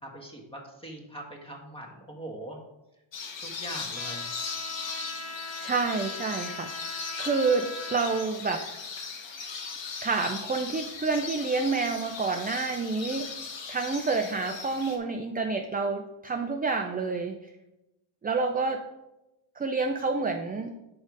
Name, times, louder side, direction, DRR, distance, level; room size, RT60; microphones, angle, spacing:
voice 1, 0.0-2.6 3.4-4.3, right 1 dB, 10° left, 1 dB, 1.3 m, -42 dB
sound 1, 3.1-15.0, left 5 dB, 65° left, 1.1 m, -38 dB
Trumpet, 3.9-8.3, left 2 dB, 30° left, 1.5 m, -40 dB
voice 2, 5.6-8.6 10.0-17.3 18.2-18.8 19.6-20.7, right 4 dB, 20° right, 4 dB, 0.3 m, -29 dB
6.5 x 4.8 x 5.2 m, 0.94 s
wide cardioid pair, 155°, 48 cm